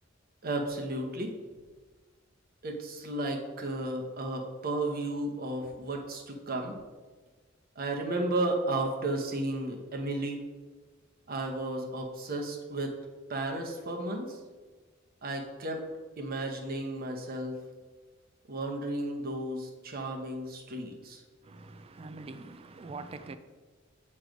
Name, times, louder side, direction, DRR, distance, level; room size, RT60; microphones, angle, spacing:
voice 1, 0.4-1.3 2.6-6.8 7.8-10.4 11.3-12.9 13.3-14.4 15.2-15.8 16.2-17.6 18.5-21.2, right 2 dB, 50° right, 0.9 m, -33 dB
voice 2, 21.4-23.4, right 3 dB, 30° right, 0.4 m, -44 dB
7.8 x 3.2 x 5.0 m
head